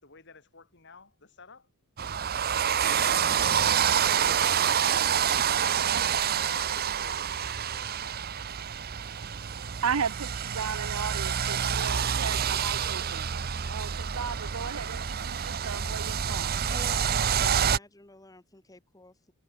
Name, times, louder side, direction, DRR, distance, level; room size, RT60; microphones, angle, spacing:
voice 1, 0.0-1.7 2.9-5.0 5.4-5.8 6.1-8.7, left 4 dB, 55° left, 4.5 m, -52 dB
sound 1, 2.0-17.8, right 8 dB, 45° right, 0.7 m, -27 dB
voice 2, 9.6-13.3 13.7-16.6, right 6 dB, 80° right, 0.7 m, -35 dB
voice 3, 16.7-19.3, left 2 dB, 15° left, 1.4 m, -49 dB
head